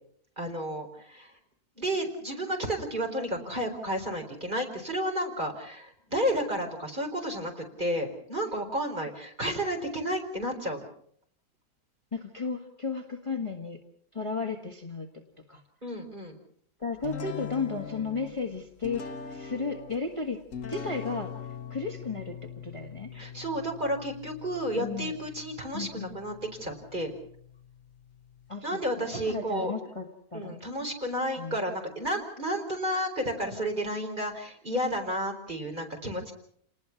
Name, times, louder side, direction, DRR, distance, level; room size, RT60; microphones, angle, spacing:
voice 1, 0.4-1.3 1.8-10.8 15.8-16.4 23.1-27.1 28.6-29.7 30.3-36.3, equal, 30° right, 3 dB, 4.6 m, -32 dB
voice 2, 12.1-13.8 14.1-15.1 15.5-15.6 16.8-21.3 21.7-23.1 24.8-25.1 25.7-26.2 28.5-30.6 31.4-31.6, left 4 dB, 20° left, 3 dB, 1.7 m, -34 dB
sound 1, 17.0-28.5, left 7 dB, 60° left, 1.6 m, -43 dB
29.5 x 20.0 x 5.9 m, 0.63 s
omnidirectional pair, 1.6 m